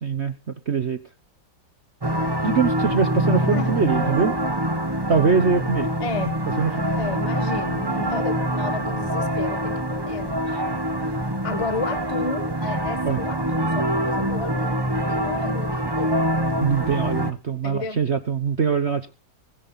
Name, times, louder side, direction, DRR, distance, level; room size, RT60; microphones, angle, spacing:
voice 1, 0.0-0.3 0.7-1.0 2.4-4.3 5.1-5.9 6.6-6.9 10.5-10.6 13.0-13.2 16.6-19.1, right 5 dB, 40° right, 1.2 m, -22 dB
sound 1, 2.0-17.3, right 1 dB, 15° right, 1.0 m, -25 dB
voice 2, 6.0-6.4 7.0-10.4 11.4-16.2 17.6-18.0, left 3 dB, 20° left, 1.5 m, -32 dB
20.5 x 11.0 x 4.0 m
omnidirectional pair, 2.0 m